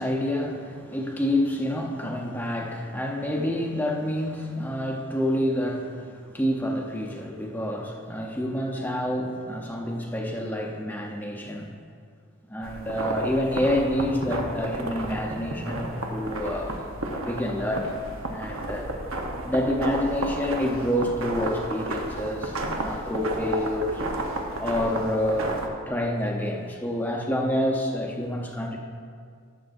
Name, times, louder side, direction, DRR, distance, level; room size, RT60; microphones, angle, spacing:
voice 1, 0.0-11.8 12.5-16.8 17.1-18.0 18.3-18.9 19.4-24.0 24.6-28.8, left 1 dB, 10° left, 0 dB, 0.7 m, -28 dB
sound 1, 12.6-25.7, right 2 dB, 70° right, 1.0 m, -32 dB
14.5 x 7.3 x 2.6 m, 2.1 s
head